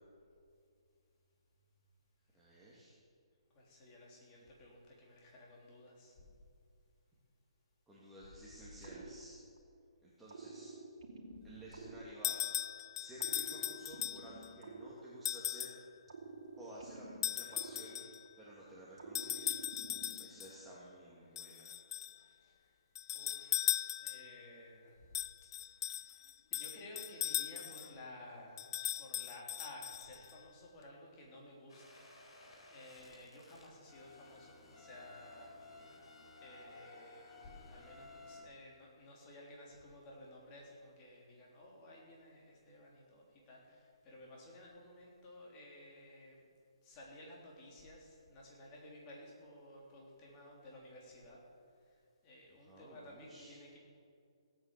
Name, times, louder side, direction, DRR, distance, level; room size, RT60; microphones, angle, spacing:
voice 1, 2.3-2.9 4.3-4.5 7.9-9.4 10.0-10.7 11.4-12.4 13.0-15.7 16.6-18.0 18.4-21.8 22.2-22.3 52.6-53.5, right 1 dB, 5° right, -8 dB, 2.3 m, -54 dB
voice 2, 3.5-6.2 22.4-22.8 23.1-25.1 25.8-26.2 26.5-28.7 29.0-36.1 36.4-46.4 46.8-51.4 51.8-53.8, left 1 dB, 25° left, -3 dB, 3.6 m, -55 dB
sound 1, 8.8-9.8 10.3-12.7 13.2-15.6 16.1-18.5 19.0-20.5, right 3 dB, 65° right, 2.8 m, -51 dB
sound 2, 12.2-14.5 15.3-15.8 17.2-18.2 19.1-20.5 21.4-22.2 23.0-24.4 25.1-27.9 28.6-30.3, left 11 dB, 40° left, 0.4 m, -38 dB
sound 3, 31.7-38.4, left 3 dB, 60° left, 3.7 m, -56 dB
17.0 x 9.0 x 6.8 m, 2.4 s
hypercardioid pair, 145°, 3 cm